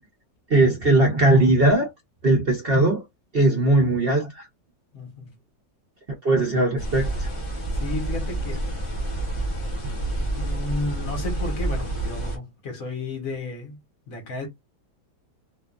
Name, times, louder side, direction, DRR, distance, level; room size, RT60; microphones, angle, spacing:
voice 1, 0.5-1.9 2.2-3.0 3.3-4.5 6.2-7.3, right 2 dB, 45° right, 0.9 m, -19 dB
voice 2, 4.9-5.3 7.7-8.6 10.3-13.8 14.1-14.5, left 2 dB, 55° left, 1.3 m, -32 dB
sound 1, 6.8-12.4, right 2 dB, 20° left, 0.9 m, -28 dB
2.9 x 2.3 x 2.3 m
omnidirectional pair, 1.8 m